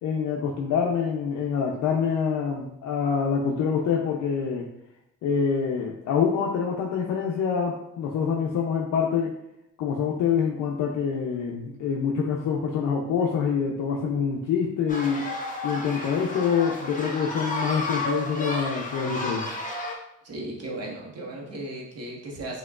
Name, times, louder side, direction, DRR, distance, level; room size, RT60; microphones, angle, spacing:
voice 1, 0.0-4.7 5.2-9.4 9.8-15.3 15.6-19.5, left 6 dB, 80° left, 0 dB, 0.6 m, -26 dB
sound 1, 14.9-19.9, left 1 dB, 25° left, 1.0 m, -32 dB
voice 2, 20.2-22.6, right 1 dB, 55° right, -2 dB, 1.5 m, -36 dB
6.1 x 2.9 x 2.4 m, 0.80 s
cardioid pair, 90°, 30 cm